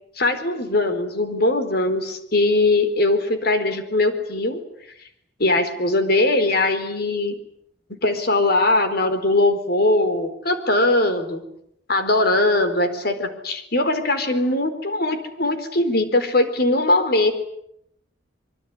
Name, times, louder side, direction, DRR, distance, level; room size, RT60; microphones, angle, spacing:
voice 1, 0.2-4.6 5.4-7.4 7.9-11.4 11.9-17.4, left 2 dB, 55° left, 9 dB, 4.4 m, -20 dB
25.5 x 24.0 x 9.8 m, 0.75 s
head